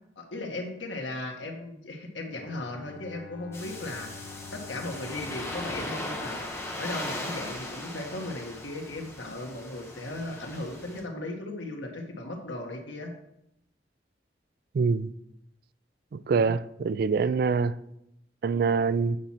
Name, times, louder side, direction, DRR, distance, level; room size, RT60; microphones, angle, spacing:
voice 1, 0.2-4.1 4.5-6.4 6.8-13.1 16.3-16.5 17.1-17.3, left 2 dB, 85° left, 1.5 m, -37 dB
Bowed string instrument, 2.3-7.1, left 5 dB, 60° left, 0.7 m, -48 dB
sound 1, 3.5-11.0, left 1 dB, 15° left, 1.1 m, -38 dB
voice 2, 14.7-15.1 16.1-17.7 18.4-19.2, right 5 dB, 55° right, 0.3 m, -25 dB
8.1 x 4.3 x 5.9 m
head